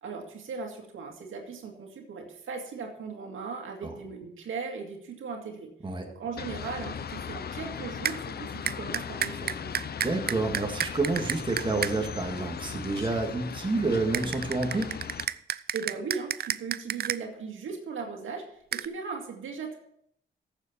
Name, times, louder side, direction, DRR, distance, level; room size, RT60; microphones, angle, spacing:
voice 1, 0.0-5.7 6.2-9.9 15.7-18.4 18.7-19.8, right 5 dB, 80° right, 1 dB, 2.1 m, -38 dB
sound 1, 6.4-15.3, left 7 dB, 50° left, 0.6 m, -38 dB
sound 2, 8.0-8.2 8.7-11.9 14.1-17.2 18.7-18.9, right 10 dB, 50° right, 0.4 m, -30 dB
voice 2, 10.0-14.9, right 3 dB, 25° right, 2 dB, 2.0 m, -29 dB
14.5 x 7.3 x 4.4 m, 0.70 s
cardioid pair, 85°, 20 cm